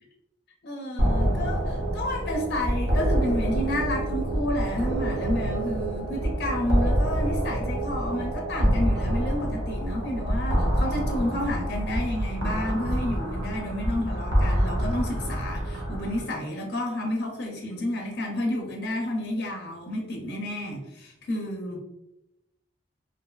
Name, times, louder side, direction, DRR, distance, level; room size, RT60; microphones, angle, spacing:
voice 1, 0.6-21.8, left 1 dB, 60° left, 0 dB, 0.4 m, -30 dB
sound 1, 1.0-16.2, right 1 dB, 70° right, 0.6 m, -26 dB
2.5 x 2.3 x 2.2 m, 0.88 s
head